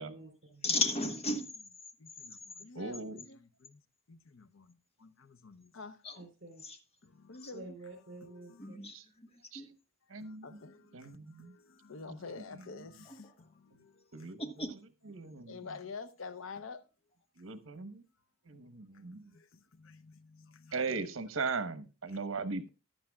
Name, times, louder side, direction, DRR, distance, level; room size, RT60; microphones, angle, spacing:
voice 1, 0.0-0.6 6.2-6.6 7.5-8.8, right 2 dB, 60° right, 3.7 m, -49 dB
voice 2, 0.6-1.5 6.0-6.1 6.6-6.8 8.6-9.7 14.4-14.7, left 2 dB, 30° left, 1.5 m, -34 dB
voice 3, 2.0-3.8 4.1-6.0 7.0-7.8 8.1-8.8 10.2-14.3 15.5-16.8 18.5-18.7 19.1-20.9 22.1-22.2, left 4 dB, 75° left, 0.7 m, -49 dB
voice 4, 2.7-3.2 8.9-9.0 9.5-9.6 10.1-10.5 10.9-11.5 14.1-14.4 15.1-15.6 17.4-18.0 18.5-19.3 20.7-22.7, right 4 dB, 80° right, 1.1 m, -38 dB
14.5 x 10.0 x 2.3 m
head